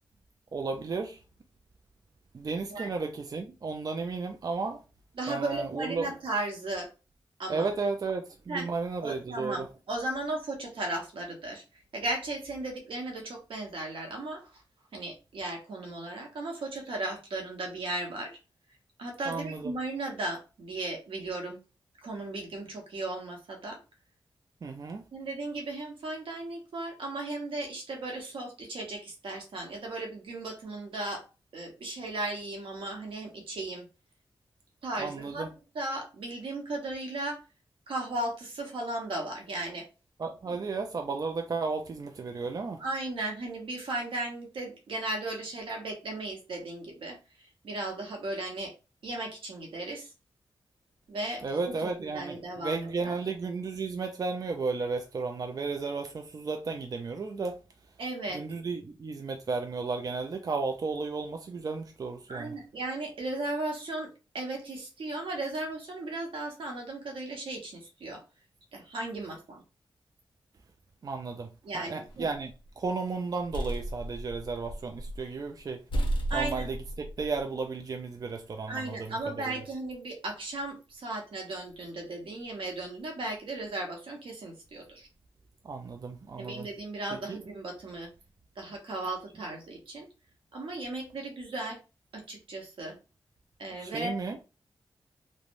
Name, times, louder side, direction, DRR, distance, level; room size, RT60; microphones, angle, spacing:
voice 1, 0.5-1.2 2.3-4.8 5.3-6.1 7.5-9.7 19.3-19.7 24.6-25.0 35.0-35.5 40.2-42.8 51.4-57.6 58.3-62.6 71.0-71.5 71.7-72.5 72.8-75.8 76.3-79.1 79.5-79.6 85.6-86.7 87.3-87.4 93.8-94.4, right 4 dB, 45° right, 0.4 m, -33 dB
voice 2, 5.1-6.9 7.4-7.7 8.5-8.7 9.0-14.6 14.9-18.4 19.0-21.6 22.0-23.8 25.1-31.2 31.5-33.9 34.8-37.4 37.9-39.9 40.5-40.6 42.8-48.7 49.0-50.1 51.1-53.2 58.0-58.4 62.3-68.2 68.7-69.6 71.6-72.3 76.3-76.7 78.7-85.1 86.4-88.1 88.6-90.1 90.5-91.8 92.1-93.0 93.6-94.1, right 2 dB, 85° right, 0.9 m, -36 dB
sound 1, 72.1-72.7 73.2-75.3 75.6-75.7 75.9-77.4, right 1 dB, 70° left, 0.6 m, -33 dB
3.2 x 2.1 x 2.5 m
cardioid pair, 70°, 9 cm